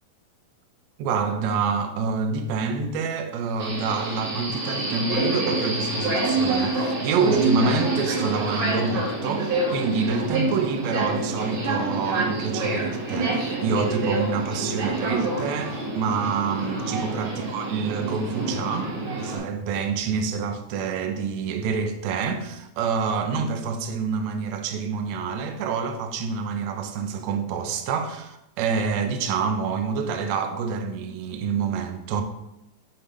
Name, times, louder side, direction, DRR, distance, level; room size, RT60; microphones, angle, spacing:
voice 1, 1.0-18.9 19.2-32.2, right 5 dB, 75° right, 1.8 m, -27 dB
Subway metro underground, 3.6-19.4, right 2 dB, 55° right, 3.0 m, -27 dB
7.1 x 3.3 x 5.4 m
omnidirectional pair, 3.6 m